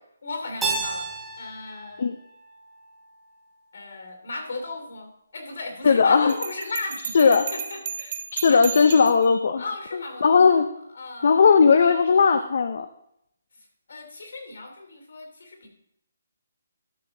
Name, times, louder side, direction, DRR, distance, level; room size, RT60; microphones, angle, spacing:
voice 1, 0.2-1.1 1.4-2.1 3.7-8.2 8.5-8.6 9.6-10.6 10.9-11.5 13.5-15.7, left 3 dB, 65° left, 4 dB, 2.8 m, -36 dB
Keyboard (musical), 0.6-3.4, right 3 dB, 5° right, 1.1 m, -32 dB
voice 2, 5.8-6.3 7.1-7.4 8.3-9.7 10.2-10.7 11.2-12.9, left 5 dB, 45° left, 9 dB, 0.5 m, -17 dB
Bell, 6.3-9.3, right 6 dB, 30° right, 0.7 m, -34 dB
12.0 x 6.4 x 3.8 m, 0.75 s
hypercardioid pair, 175°, 0 cm